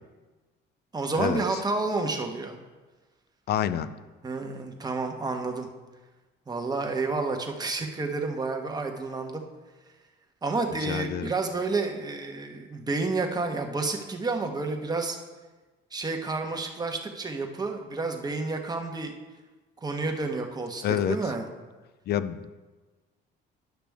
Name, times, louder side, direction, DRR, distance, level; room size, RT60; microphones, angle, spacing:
voice 1, 0.9-2.6 4.2-5.7 6.5-9.4 10.4-15.2 15.9-19.1 19.8-21.4, right 3 dB, 20° right, 3 dB, 1.0 m, -30 dB
voice 2, 3.5-3.9 10.8-11.3 20.8-21.2 22.1-22.5, left 9 dB, 55° left, 14 dB, 0.4 m, -27 dB
10.5 x 5.9 x 3.5 m, 1.2 s
cardioid pair, 105°, 20 cm